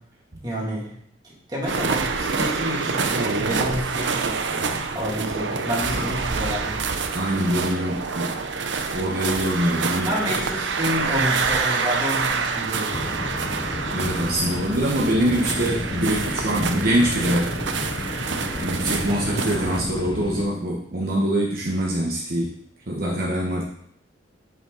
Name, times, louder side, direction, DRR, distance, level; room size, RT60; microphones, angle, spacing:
voice 1, 0.4-0.9 1.5-6.8 10.0-13.1, equal, 20° right, -5 dB, 2.3 m, -29 dB
sound 1, 1.7-19.8, right 4 dB, 75° right, 0.6 m, -27 dB
voice 2, 7.1-8.4 8.9-10.1 13.9-17.6 18.6-22.5 22.9-23.6, right 1 dB, 55° right, -3 dB, 1.0 m, -24 dB
sound 2, 12.9-20.5, left 2 dB, 25° left, 0.4 m, -32 dB
7.7 x 5.5 x 3.8 m, 0.68 s
head